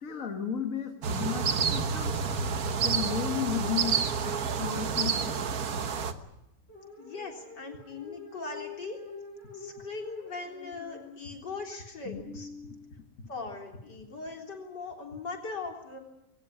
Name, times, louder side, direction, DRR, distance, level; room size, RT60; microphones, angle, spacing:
voice 1, 0.0-2.1 2.8-5.4 12.0-13.0, left 8 dB, 50° left, 4 dB, 2.1 m, -35 dB
sound 1, 1.0-6.1, right 6 dB, 60° right, 1.6 m, -29 dB
sound 2, 6.7-11.2, left 4 dB, 35° left, 6.8 m, -46 dB
voice 2, 7.0-9.0 9.5-12.5 13.3-16.0, left 4 dB, 75° left, 2 dB, 4.2 m, -40 dB
22.0 x 18.0 x 9.7 m, 0.86 s
omnidirectional pair, 1.9 m